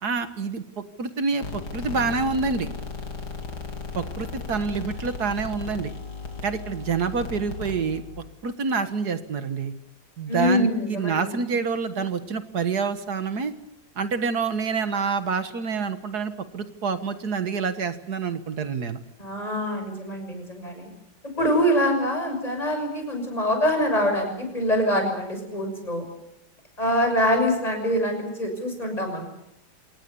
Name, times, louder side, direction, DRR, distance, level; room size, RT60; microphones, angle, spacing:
voice 1, 0.0-2.7 3.9-5.9 6.4-8.0 8.4-9.7 10.2-13.5 14.0-19.0, right 5 dB, 55° right, 10 dB, 1.9 m, -27 dB
sound 1, 1.4-8.3, left 4 dB, 75° left, 3.6 m, -36 dB
voice 2, 10.3-11.4 19.2-20.9 21.4-26.0 26.8-29.3, equal, 20° left, 4 dB, 6.6 m, -24 dB
27.0 x 19.0 x 6.9 m, 0.82 s
omnidirectional pair, 2.2 m